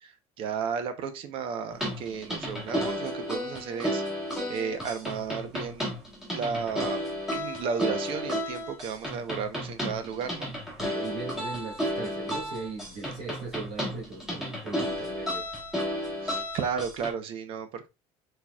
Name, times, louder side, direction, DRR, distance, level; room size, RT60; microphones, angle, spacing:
voice 1, 0.0-4.0 4.5-5.9 6.3-7.0 7.3-10.5 16.2-17.9, right 6 dB, 50° right, 0.8 m, -33 dB
sound 1, 1.7-17.1, equal, 5° right, 1.4 m, -33 dB
voice 2, 10.8-15.5, right 4 dB, 75° right, 2.0 m, -39 dB
4.5 x 4.3 x 2.3 m
cardioid pair, 165°, 12 cm